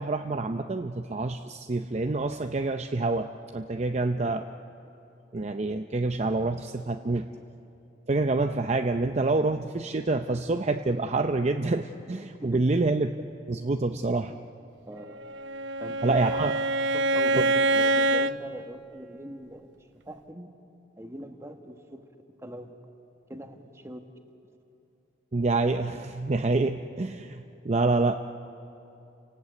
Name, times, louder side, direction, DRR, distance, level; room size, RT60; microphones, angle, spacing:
voice 1, 0.0-4.5 5.3-7.3 8.1-13.1 13.5-14.3 16.0-16.6 17.4-17.5 25.3-28.2, right 3 dB, 40° right, 6 dB, 0.6 m, -27 dB
voice 2, 14.9-15.2 15.8-16.2 16.9-20.5 21.0-22.1 22.4-22.7 23.3-24.0, equal, 15° right, 5 dB, 1.5 m, -42 dB
Bowed string instrument, 15.2-18.4, right 2 dB, 90° right, 0.8 m, -25 dB
30.0 x 18.0 x 8.3 m, 2.8 s
head